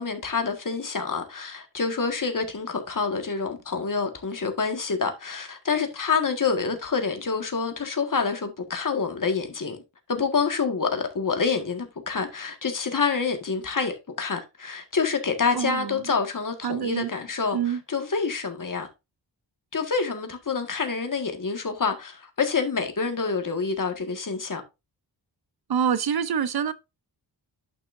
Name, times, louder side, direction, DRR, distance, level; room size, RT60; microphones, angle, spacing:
voice 1, 0.0-9.8 10.1-18.9 19.7-24.6, left 5 dB, 45° left, 1.7 m, -27 dB
voice 2, 15.5-16.1 16.6-17.1 17.5-17.8 25.7-26.7, right 8 dB, 60° right, 0.6 m, -26 dB
10.5 x 6.2 x 2.6 m
wide cardioid pair, 130°, 44 cm